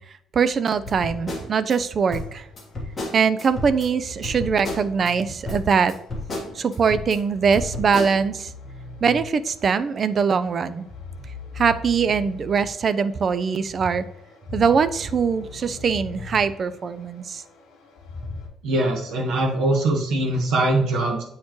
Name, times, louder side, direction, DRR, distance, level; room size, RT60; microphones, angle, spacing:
voice 1, 0.3-2.4 3.1-5.9 6.5-8.5 9.0-10.9 11.6-14.0 14.5-17.4, right 6 dB, 30° right, 13 dB, 0.3 m, -22 dB
sound 1, 0.7-18.5, left 4 dB, 80° left, 1.8 m, -41 dB
sound 2, 0.9-1.8 2.1-3.9 4.2-5.1 5.4-7.2 7.5-8.2, left 2 dB, 20° left, 1.6 m, -32 dB
voice 2, 18.6-21.2, right 2 dB, 80° right, -2 dB, 1.3 m, -22 dB
8.4 x 4.3 x 3.0 m, 0.78 s
cardioid pair, 180°, 0 cm